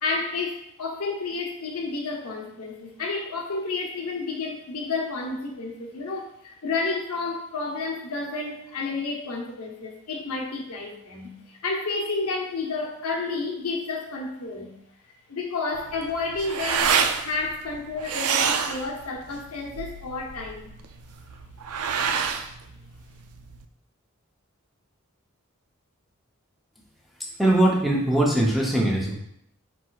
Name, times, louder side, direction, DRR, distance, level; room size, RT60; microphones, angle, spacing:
voice 1, 0.0-14.7 15.3-20.7, left 3 dB, 85° left, 1 dB, 0.8 m, -31 dB
sound 1, 15.7-23.6, right 6 dB, 80° right, 0.4 m, -28 dB
voice 2, 27.4-29.1, right 1 dB, ahead, -3 dB, 0.6 m, -21 dB
4.6 x 4.2 x 2.3 m, 0.74 s
head